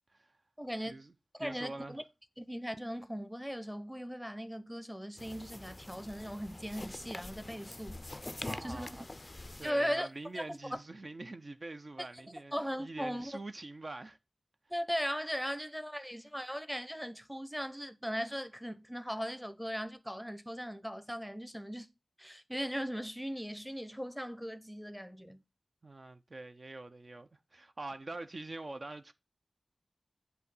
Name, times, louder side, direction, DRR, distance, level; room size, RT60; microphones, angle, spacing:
voice 1, 0.6-0.9 1.4-2.0 2.4-8.0 8.6-9.0 9.6-10.1 10.4-10.5 12.5-13.3 14.7-21.9 22.2-25.4, equal, ahead, 0.7 m, -38 dB
voice 2, 1.4-2.0 8.4-9.1 9.6-12.5 12.8-14.2 25.8-29.1, right 2 dB, 55° right, 0.5 m, -45 dB
sound 1, 5.2-9.7, left 2 dB, 35° left, 0.3 m, -45 dB
8.1 x 2.7 x 5.4 m
wide cardioid pair, 50°, 0 cm